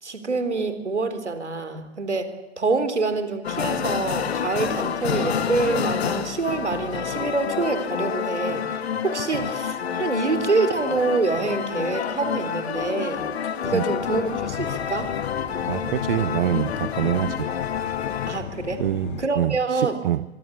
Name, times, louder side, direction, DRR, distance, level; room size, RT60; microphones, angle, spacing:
voice 1, 0.0-13.2 13.6-15.1 18.3-18.8 19.2-20.0, right 3 dB, 80° right, 10 dB, 4.0 m, -26 dB
sound 1, 3.4-18.4, left 8 dB, 65° left, 2.1 m, -28 dB
sound 2, 3.5-19.3, left 13 dB, 45° left, 1.6 m, -40 dB
voice 2, 15.7-17.5 18.8-20.3, right 12 dB, 55° right, 15 dB, 1.0 m, -25 dB
24.5 x 24.0 x 8.4 m, 0.98 s
figure-of-eight pair, 105°, 34 cm